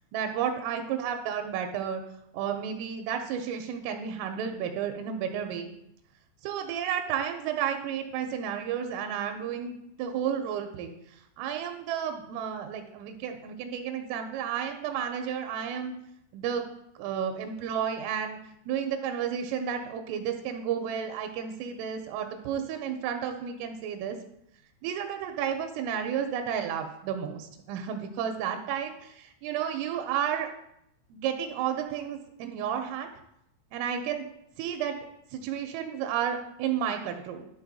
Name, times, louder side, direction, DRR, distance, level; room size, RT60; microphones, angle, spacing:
voice 1, 0.1-2.0 2.3-5.7 6.4-10.9 11.4-15.9 16.3-16.6 17.0-18.4 18.7-24.2 24.8-30.5 31.1-33.1 33.7-34.2 34.6-35.0 35.3-37.5, right 8 dB, 85° right, 5 dB, 3.1 m, -32 dB
12.5 x 4.3 x 4.0 m, 0.78 s
omnidirectional pair, 5.9 m